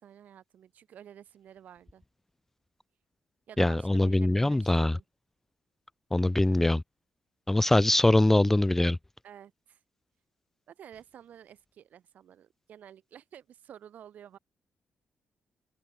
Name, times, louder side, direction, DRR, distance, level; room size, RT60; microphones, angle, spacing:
voice 1, 0.0-2.0 3.5-5.0 9.2-9.8 10.7-14.4, right 9 dB, 70° right, 6.4 m, -51 dB
voice 2, 3.6-5.0 6.1-6.8 7.5-9.0, left 1 dB, 10° left, 0.3 m, -23 dB
open air
cardioid pair, 75°, 3 cm